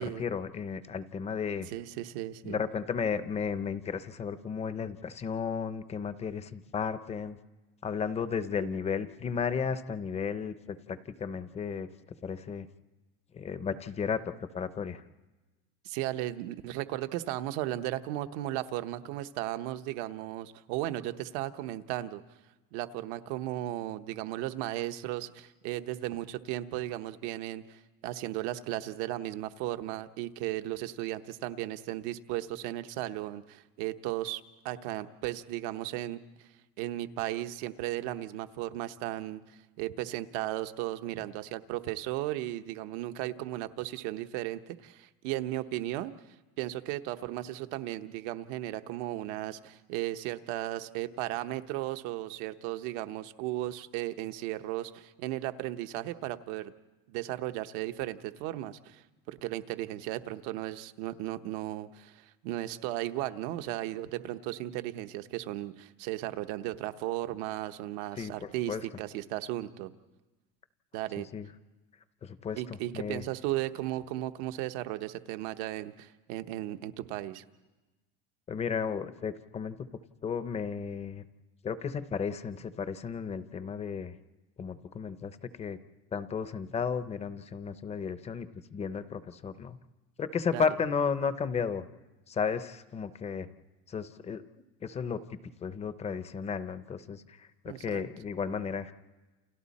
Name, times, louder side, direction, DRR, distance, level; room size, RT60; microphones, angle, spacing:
voice 1, 0.0-1.7 2.4-7.4 7.8-11.9 12.2-12.7 13.3-14.2 14.5-15.0 68.2-68.8 71.3-71.5 72.2-73.2 78.5-79.9 80.2-81.2 81.6-84.2 84.6-85.8 86.1-89.8 90.2-91.8 92.3-93.5 93.9-94.4 94.8-95.2 95.6-98.9, left 6 dB, 20° left, 12 dB, 0.6 m, -34 dB
voice 2, 1.7-2.6 15.8-22.2 22.7-36.2 36.8-46.1 46.6-56.7 57.1-69.9 70.9-71.3 72.6-77.4 90.5-90.6 97.7-98.0, right 15 dB, 70° right, 9 dB, 1.1 m, -35 dB
29.5 x 28.5 x 4.2 m, 1.2 s
cardioid pair, 165°, 36 cm